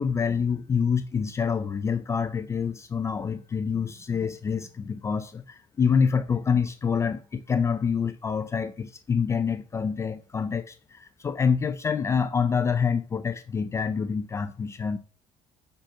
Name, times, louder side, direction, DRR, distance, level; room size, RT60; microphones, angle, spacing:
voice 1, 0.0-15.0, left 6 dB, 20° left, 0.4 m, -26 dB
5.8 x 5.2 x 5.7 m
cardioid pair, 160°, 14 cm